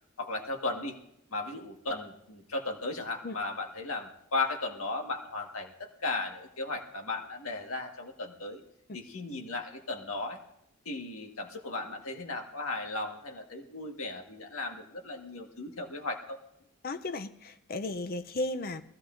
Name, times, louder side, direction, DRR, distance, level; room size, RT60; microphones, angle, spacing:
voice 1, 0.2-1.0 1.3-8.6 8.9-10.4 10.8-16.4, left 2 dB, 80° left, 3 dB, 1.7 m, -36 dB
voice 2, 16.8-18.8, left 2 dB, 45° left, 11 dB, 0.6 m, -35 dB
20.5 x 15.5 x 2.6 m, 0.77 s
head